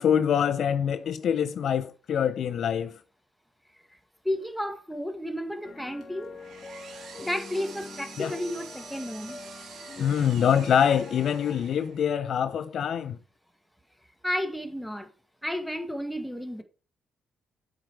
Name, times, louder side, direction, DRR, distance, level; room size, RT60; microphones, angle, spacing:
voice 1, 0.0-3.0 8.2-8.3 10.0-13.2, left 8 dB, 65° left, 0.5 m, -25 dB
voice 2, 4.2-6.3 7.2-9.4 14.2-15.1 15.4-16.6, equal, ahead, 1.5 m, -32 dB
sound 1, 5.6-11.6, left 4 dB, 30° left, 1.3 m, -44 dB
Power tool, 6.0-12.1, right 6 dB, 70° right, 2.2 m, -47 dB
7.7 x 4.7 x 4.7 m
cardioid pair, 80°, 0 cm